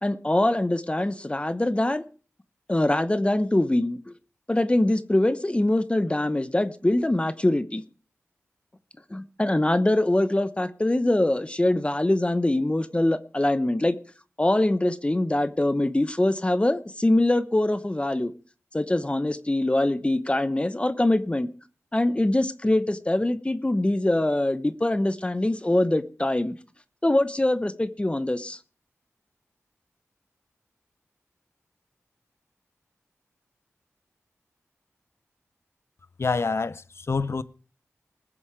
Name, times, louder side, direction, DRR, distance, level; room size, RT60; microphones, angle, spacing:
voice 1, 0.0-2.0 2.7-4.0 4.5-7.8 9.1-14.0 14.4-18.3 18.7-21.5 21.9-26.6 27.0-28.6, left 1 dB, 20° left, 0.9 m, -23 dB
voice 2, 36.2-37.4, left 4 dB, 60° left, 0.7 m, -27 dB
20.5 x 7.1 x 4.9 m
wide cardioid pair, 60°, 5 cm